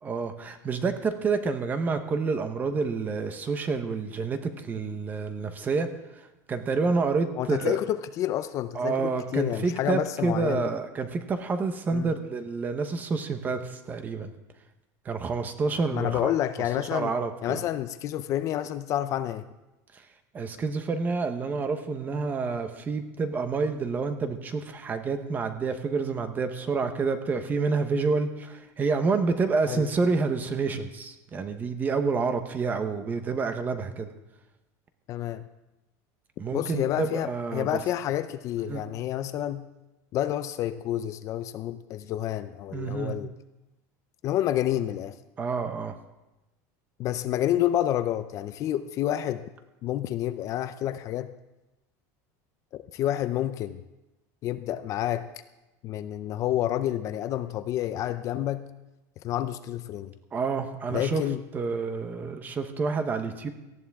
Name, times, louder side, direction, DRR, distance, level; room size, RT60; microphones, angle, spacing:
voice 1, 0.0-5.9 6.2-7.8 8.7-14.3 15.0-16.3 16.8-17.6 20.3-34.1 36.4-37.8 38.7-38.9 42.7-43.2 45.4-45.9 60.3-61.2 61.5-63.5, right 4 dB, 20° right, 9 dB, 0.9 m, -28 dB
voice 2, 7.4-10.7 11.9-12.1 15.9-17.1 17.4-19.4 29.7-29.9 35.1-35.4 36.5-39.7 40.1-43.3 44.2-45.1 47.0-49.4 49.8-51.3 52.7-53.8 54.4-55.3 55.8-58.7 59.2-60.1 60.9-61.4, left 12 dB, 35° left, 12 dB, 0.5 m, -29 dB
18.5 x 14.0 x 3.6 m, 1.0 s
cardioid pair, 165°, 9 cm